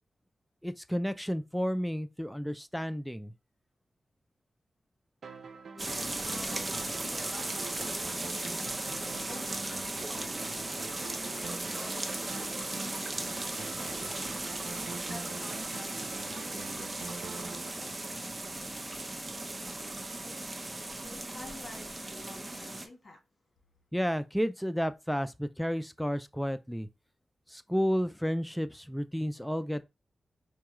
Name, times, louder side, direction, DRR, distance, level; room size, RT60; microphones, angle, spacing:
voice 1, 0.6-3.3 23.9-26.9 27.5-29.8, equal, 5° left, 0.4 m, -32 dB
sound 1, 5.2-18.8, right 5 dB, 75° right, 0.6 m, -45 dB
voice 2, 5.7-8.9 9.2-10.7 11.2-14.5 15.1-17.2 21.0-23.2, left 2 dB, 55° left, 1.8 m, -50 dB
sound 2, 5.8-22.9, right 2 dB, 25° right, 0.7 m, -37 dB
4.6 x 2.3 x 3.0 m
cardioid pair, 70°, 0 cm